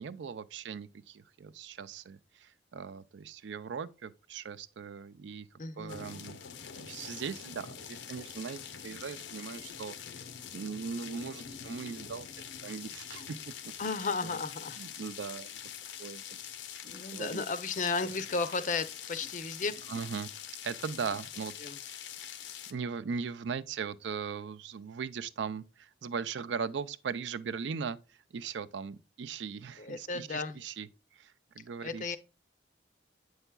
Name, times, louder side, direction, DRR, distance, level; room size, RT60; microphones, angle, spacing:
voice 1, 0.0-5.5 5.8-6.4 6.8-12.3 12.6-13.7 14.2-14.4 14.8-15.6 16.0-16.2 17.1-17.4 19.9-20.3 20.6-21.5 21.9-22.0 22.7-28.0 28.3-30.9 31.1-32.2, right 6 dB, 80° right, 0.4 m, -39 dB
voice 2, 5.6-6.2 13.8-14.8 16.8-19.9 21.6-21.8 29.8-30.6 31.8-32.2, left 4 dB, 45° left, 0.5 m, -34 dB
sound 1, 5.9-22.7, left 8 dB, 85° left, 0.6 m, -44 dB
7.9 x 5.6 x 2.2 m
head